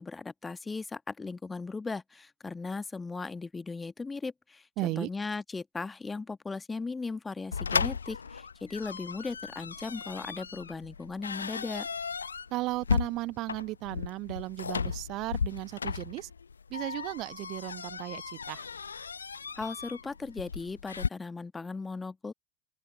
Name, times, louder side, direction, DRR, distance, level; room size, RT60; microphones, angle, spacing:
voice 1, 0.0-11.9 19.5-22.3, left 4 dB, 15° left, 1.3 m, -37 dB
voice 2, 4.8-5.1 12.5-16.3 16.7-18.7, right 19 dB, 45° right, 0.9 m, -35 dB
sound 1, 7.5-21.1, left 5 dB, 75° left, 0.8 m, -35 dB
open air
figure-of-eight pair, 75°, 0 cm